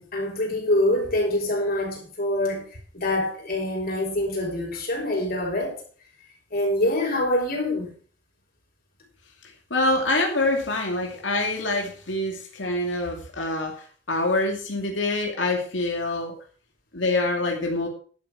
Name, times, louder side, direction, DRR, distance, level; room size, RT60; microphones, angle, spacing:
voice 1, 0.0-2.7 2.9-5.8 6.5-7.9, left 1 dB, 55° left, 5.8 m, -25 dB
voice 2, 9.7-16.3 16.9-17.9, left 2 dB, 75° left, 2.6 m, -25 dB
11.5 x 8.4 x 6.1 m
head